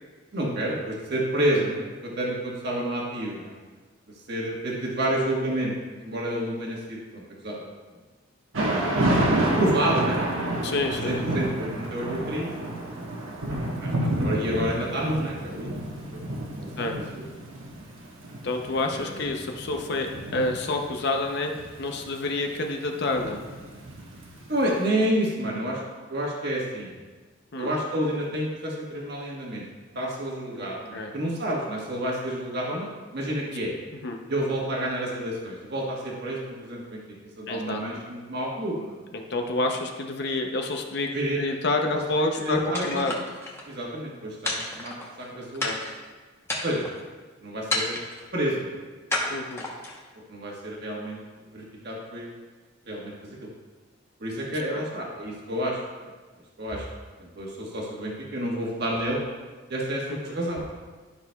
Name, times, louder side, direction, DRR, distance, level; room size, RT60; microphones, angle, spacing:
voice 1, 0.3-3.5 4.3-7.7 9.6-10.2 11.0-12.5 13.8-16.2 16.8-17.2 18.9-19.1 24.5-25.8 26.1-27.0 27.6-29.6 29.9-33.7 34.3-37.0 37.4-38.9 41.1-41.4 41.9-42.0 42.3-43.2 43.7-45.7 46.6-46.9 47.4-48.0 48.3-48.8 50.3-52.3 52.9-53.1 54.2-55.8 56.6-56.9 57.2-59.2 59.7-60.6, right 1 dB, 50° right, -3 dB, 1.4 m, -29 dB
Thunder / Rain, 8.5-24.6, right 1 dB, 70° right, 1.2 m, -30 dB
voice 2, 10.6-11.1 16.8-16.9 18.4-21.5 21.8-23.4 27.5-27.7 30.6-31.1 34.0-34.2 37.5-37.8 39.1-41.1 41.4-43.1 45.3-45.8 49.3-49.6 54.7-54.8, left 2 dB, 55° left, 3 dB, 0.6 m, -28 dB
sound 1, 42.7-43.6 44.4-45.2 45.6-46.0 46.4-47.0 47.7-48.3 49.1-50.0, left 2 dB, 10° left, 0.9 m, -31 dB
11.5 x 6.0 x 2.3 m, 1.3 s
head